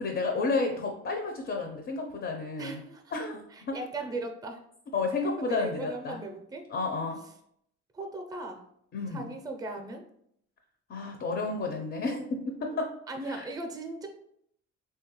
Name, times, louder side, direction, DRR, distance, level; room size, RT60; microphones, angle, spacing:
voice 1, 0.0-2.8 3.1-3.4 3.7-3.8 4.9-6.2 6.7-7.2 8.9-9.3 10.9-12.9 13.3-13.4, left 3 dB, 40° left, 3 dB, 0.5 m, -31 dB
voice 2, 2.6-3.0 3.5-4.6 5.4-6.7 7.9-8.6 9.1-10.0 13.1-14.1, right 2 dB, 15° right, 4 dB, 0.4 m, -38 dB
3.2 x 2.3 x 2.9 m, 0.72 s
cardioid pair, 90°, 30 cm